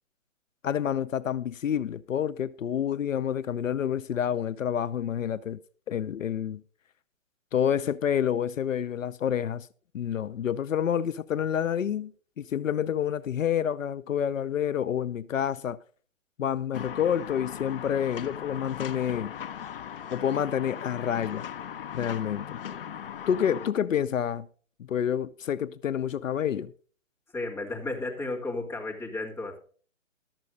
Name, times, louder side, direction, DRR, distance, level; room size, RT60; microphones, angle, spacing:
voice 1, 0.6-5.6 5.9-6.6 7.5-9.7 9.9-12.1 12.4-15.8 16.4-19.3 20.1-21.5 21.9-22.6 23.3-24.5 24.9-26.7, left 9 dB, 75° left, 0.6 m, -28 dB
sound 1, 16.7-23.7, left 9 dB, 45° left, 0.7 m, -39 dB
voice 2, 27.3-29.6, left 2 dB, 5° left, 2.1 m, -33 dB
12.0 x 7.6 x 5.2 m
hypercardioid pair, 150°, 39 cm